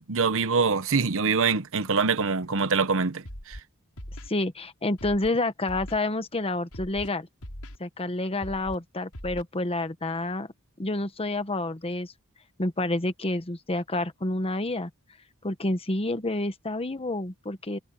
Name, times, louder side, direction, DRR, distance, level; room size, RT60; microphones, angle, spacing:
voice 1, 0.0-3.6, right 5 dB, 65° right, 1.0 m, -24 dB
Scratching (performance technique), 3.2-3.6 4.0-4.3 5.0-5.3 5.7-6.0 6.7-7.1 7.4-7.8 8.4-8.7 9.1-9.4, equal, 90° left, 6.3 m, -40 dB
voice 2, 4.3-7.3 7.8-10.5 10.8-12.1 12.6-14.9 15.4-17.8, left 2 dB, 25° left, 1.2 m, -29 dB
head